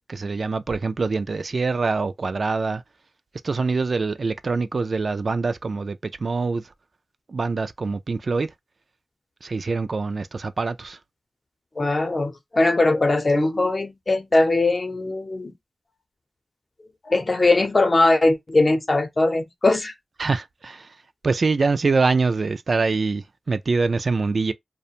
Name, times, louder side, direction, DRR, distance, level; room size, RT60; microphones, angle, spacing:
voice 1, 0.1-2.8 3.4-6.6 7.3-8.5 9.4-11.0 20.2-20.9 21.2-24.5, right 4 dB, 60° right, 0.3 m, -24 dB
voice 2, 11.8-15.5 17.1-19.9, left 2 dB, 40° left, 0.7 m, -20 dB
2.4 x 2.1 x 2.7 m
cardioid pair, 55°, 0 cm